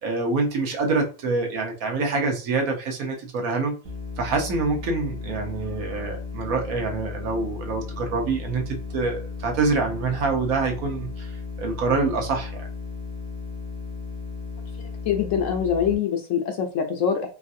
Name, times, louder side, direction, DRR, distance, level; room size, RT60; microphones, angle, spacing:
voice 1, 0.0-3.8 4.2-11.3 11.6-12.7, right 3 dB, 70° right, 1.2 m, -26 dB
sound 1, 3.8-15.9, left 4 dB, 45° right, 0.9 m, -35 dB
voice 2, 15.1-17.3, left 7 dB, 65° left, 0.8 m, -24 dB
3.1 x 2.6 x 2.5 m
omnidirectional pair, 1.6 m